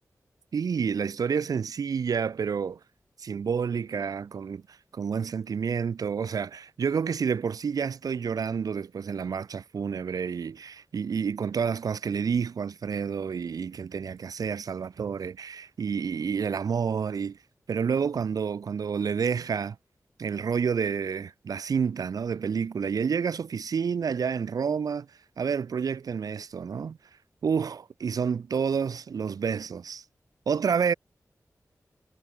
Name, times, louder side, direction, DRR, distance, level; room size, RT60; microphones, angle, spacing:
voice 1, 0.5-2.8 3.2-17.4 17.7-19.8 20.2-25.1 25.4-27.0 27.4-30.0 30.5-30.9, right 6 dB, 80° right, 0.5 m, -29 dB
wide cardioid pair, 65°, 6 cm